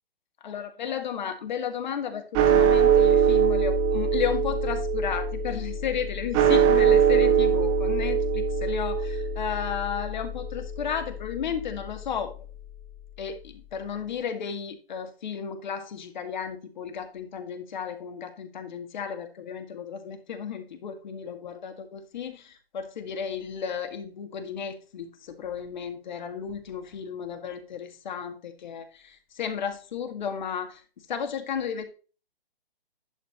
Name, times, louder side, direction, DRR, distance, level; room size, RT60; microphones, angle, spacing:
voice 1, 0.4-12.4 13.2-30.8 31.1-31.8, left 7 dB, 50° left, 7 dB, 1.9 m, -33 dB
sound 1, 2.3-12.8, right 6 dB, 15° right, 0.7 m, -23 dB
11.0 x 4.5 x 4.2 m, 0.33 s
hypercardioid pair, 145°, 30 cm